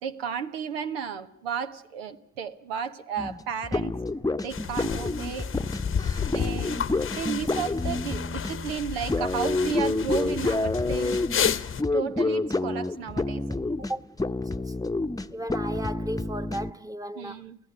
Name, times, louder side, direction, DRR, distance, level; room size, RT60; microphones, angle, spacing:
voice 1, 0.0-3.9 4.4-5.5 6.3-6.8 7.1-11.2 11.9-13.4 17.1-17.6, right 7 dB, 90° right, 1.0 m, -33 dB
sound 1, 3.2-16.7, left 2 dB, 10° left, 0.9 m, -29 dB
sound 2, 4.5-11.8, left 8 dB, 45° left, 1.0 m, -32 dB
voice 2, 15.3-17.4, right 1 dB, 10° right, 1.1 m, -34 dB
29.0 x 16.0 x 9.4 m
hypercardioid pair, 45°, 30 cm